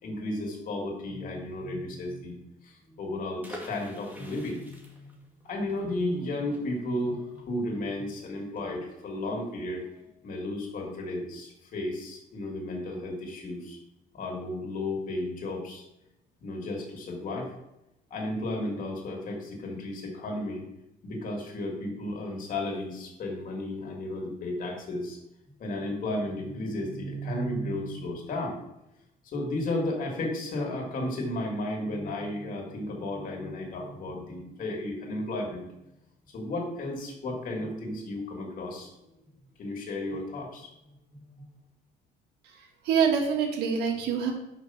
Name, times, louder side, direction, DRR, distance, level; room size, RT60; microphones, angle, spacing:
voice 1, 0.0-2.4 2.6-5.1 5.4-9.8 10.2-13.8 14.1-15.8 16.4-17.5 18.1-20.6 21.0-25.2 25.6-28.5 29.2-35.7 36.3-39.0 39.6-40.7 41.1-41.4, left 1 dB, 55° left, 0 dB, 2.4 m, -33 dB
sound 1, 3.4-9.0 9.3-9.4 9.7-10.0, equal, 10° right, 1.9 m, -47 dB
voice 2, 42.5-44.3, right 6 dB, 80° right, 1 dB, 1.6 m, -26 dB
5.8 x 5.1 x 5.8 m, 0.88 s
cardioid pair, 110°, 17 cm